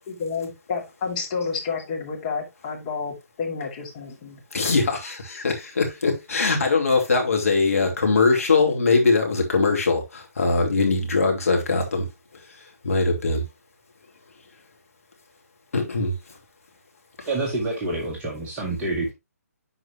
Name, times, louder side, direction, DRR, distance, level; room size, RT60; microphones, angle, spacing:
voice 1, 0.1-4.4, left 5 dB, 30° left, 2.6 m, -30 dB
voice 2, 4.5-12.1 12.8-13.4 15.7-16.1 17.2-17.3, left 3 dB, 60° left, 2.9 m, -21 dB
voice 3, 17.3-19.1, right 2 dB, 15° right, 1.6 m, -27 dB
10.5 x 4.7 x 3.0 m
figure-of-eight pair, 140°, 9 cm